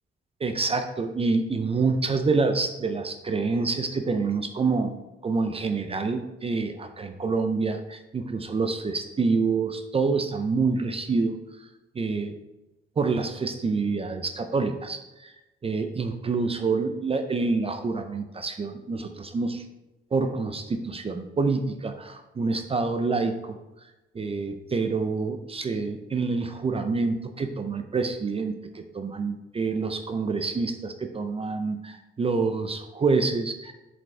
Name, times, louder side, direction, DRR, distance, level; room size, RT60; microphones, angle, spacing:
voice 1, 0.4-11.4 11.9-12.3 13.0-15.3 15.6-19.6 20.1-23.6 24.1-33.7, right 4 dB, 30° right, 7 dB, 0.6 m, -27 dB
7.5 x 5.2 x 3.3 m, 1.0 s
cardioid pair, 90°, 20 cm